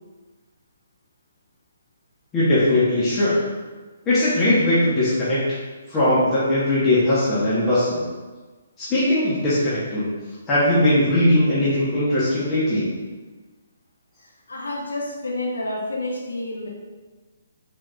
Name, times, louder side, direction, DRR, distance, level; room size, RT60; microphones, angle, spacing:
voice 1, 2.3-3.3 4.1-5.6 5.9-8.0 8.8-10.1 10.5-12.9, left 1 dB, 20° left, -11 dB, 1.2 m, -20 dB
voice 2, 14.5-16.7, left 1 dB, 80° left, -2 dB, 1.1 m, -29 dB
4.7 x 4.1 x 2.5 m, 1.3 s
hypercardioid pair, 140°, 0 cm